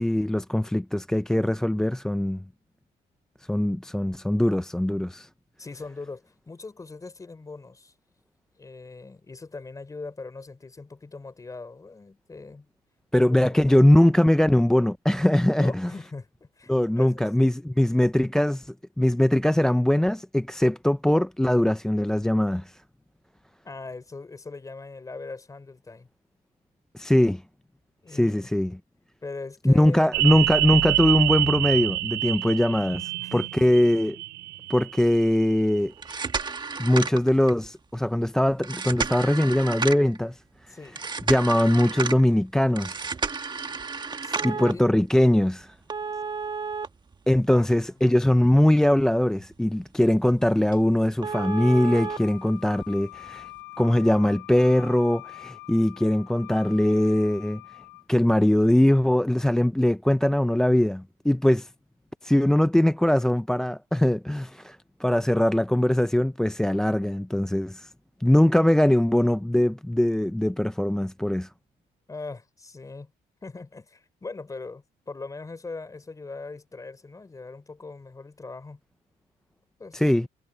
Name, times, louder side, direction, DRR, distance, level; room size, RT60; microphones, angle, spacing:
voice 1, 0.0-2.4 3.5-5.3 13.1-15.9 16.7-22.8 26.9-27.4 28.1-28.8 29.6-34.2 34.7-35.9 36.8-40.4 40.7-40.8 41.3-43.1 44.4-45.7 47.3-53.5 53.8-57.6 58.1-61.7 62.2-67.9 68.2-71.5 79.9-80.3, left 1 dB, 5° left, 0.3 m, -21 dB
voice 2, 5.6-7.9 8.6-12.7 13.2-13.9 15.5-17.3 23.6-26.1 28.0-28.5 29.2-30.1 33.2-33.4 40.7-41.0 44.2-44.9 47.5-47.7 48.0-48.2 72.1-73.1 73.4-78.8 79.8-80.0, left 3 dB, 20° left, 3.4 m, -40 dB
sound 1, 30.1-35.4 35.8-35.9, right 20 dB, 80° right, 0.4 m, -27 dB
sound 2, 35.9-37.7 38.6-40.2 41.0-42.2 42.8-44.7 45.9-47.8 48.2-48.3 48.8-48.9 49.4-49.5 49.8-49.9 50.3-50.4 50.7-50.8 51.2-52.2 53.3-53.4, right 5 dB, 25° right, 1.6 m, -31 dB
Wind instrument woodwind instrument, 51.3-58.1, left 25 dB, 90° left, 1.0 m, -44 dB
cardioid pair, 110°, 17 cm